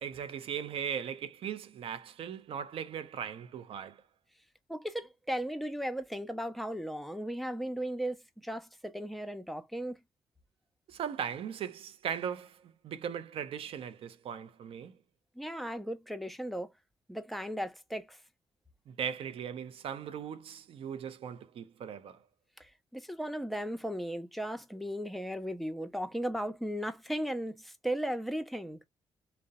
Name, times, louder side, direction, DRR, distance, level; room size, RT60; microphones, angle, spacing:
voice 1, 0.0-4.0 10.9-15.0 18.9-22.2, right 8 dB, 75° right, 0.4 m, -38 dB
voice 2, 4.7-10.0 15.4-16.7 17.1-18.2 22.6-28.8, equal, ahead, 0.5 m, -36 dB
2.7 x 2.0 x 2.2 m
cardioid pair, 85°, 10 cm